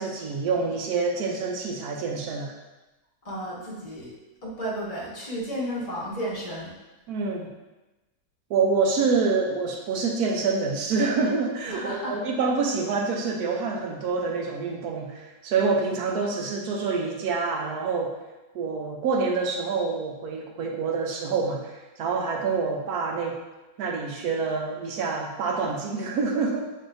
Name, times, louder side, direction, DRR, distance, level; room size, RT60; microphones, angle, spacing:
voice 1, 0.0-2.5 7.1-7.5 8.5-18.1 18.5-23.4 23.8-26.6, right 4 dB, 70° right, 1 dB, 1.0 m, -27 dB
voice 2, 3.2-4.1 4.4-6.7 11.7-12.1, equal, 25° left, -6 dB, 1.0 m, -33 dB
6.2 x 3.2 x 2.6 m, 1.1 s
omnidirectional pair, 1.9 m